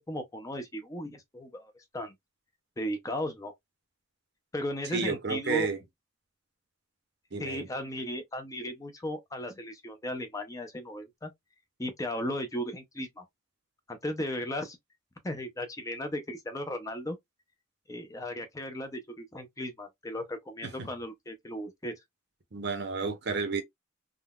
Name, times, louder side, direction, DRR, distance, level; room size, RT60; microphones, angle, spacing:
voice 1, 0.1-2.1 2.8-3.5 4.5-5.7 7.4-11.3 11.8-13.2 13.9-14.8 15.2-17.2 17.9-21.9, left 1 dB, 15° left, 0.5 m, -36 dB
voice 2, 4.9-5.8 7.3-7.7 20.8-20.9 22.5-23.6, right 4 dB, 55° right, 0.7 m, -31 dB
3.6 x 2.2 x 2.3 m
head